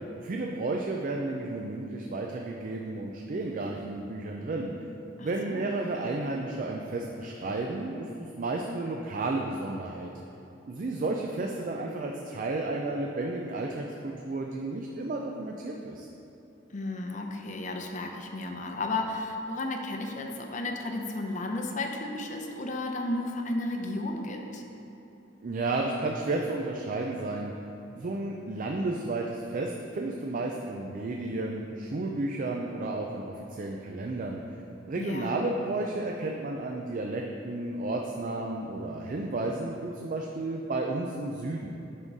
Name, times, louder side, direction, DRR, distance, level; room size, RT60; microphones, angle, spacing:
voice 1, 0.2-4.7 5.2-10.1 10.7-16.1 25.4-27.5 28.0-34.4 34.9-41.7, right 2 dB, 45° right, 1 dB, 0.4 m, -32 dB
voice 2, 5.2-5.7 16.7-24.6 35.0-35.5, left 2 dB, 40° left, 2 dB, 0.6 m, -33 dB
11.0 x 3.7 x 4.0 m, 2.9 s
head